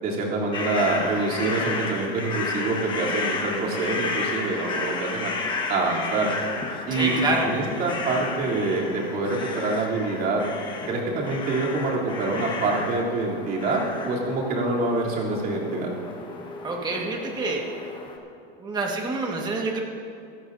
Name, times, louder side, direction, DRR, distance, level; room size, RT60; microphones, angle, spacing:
voice 1, 0.0-5.3 5.7-6.3 6.9-10.4 10.9-15.9, right 3 dB, 30° right, -4 dB, 3.1 m, -26 dB
sound 1, 0.5-18.2, left 4 dB, 15° left, 1.3 m, -32 dB
voice 2, 6.9-7.5 16.6-17.6 18.6-19.8, right 3 dB, 15° right, 0 dB, 1.6 m, -27 dB
25.0 x 14.0 x 2.7 m, 2.4 s
supercardioid pair, 155°, 29 cm